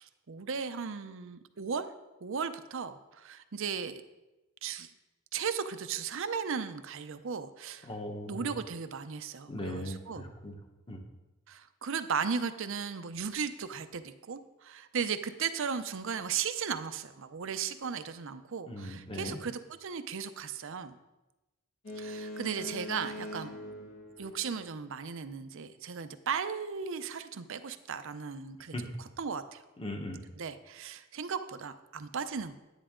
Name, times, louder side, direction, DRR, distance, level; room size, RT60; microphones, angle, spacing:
voice 1, 0.0-1.9 2.2-4.0 4.6-4.9 5.3-7.9 8.3-10.2 11.5-21.0 22.0-23.5 24.2-28.7 29.2-29.6 30.4-32.6, right 6 dB, 65° right, 10 dB, 0.6 m, -36 dB
voice 2, 7.8-8.5 9.5-10.6 10.9-11.0 18.6-19.4 28.7-28.8 29.8-30.2, left 1 dB, 25° left, 3 dB, 1.2 m, -39 dB
Boat Water vehicle, 21.8-25.0, left 1 dB, 65° left, 1.9 m, -42 dB
10.0 x 9.6 x 3.8 m, 1.0 s
head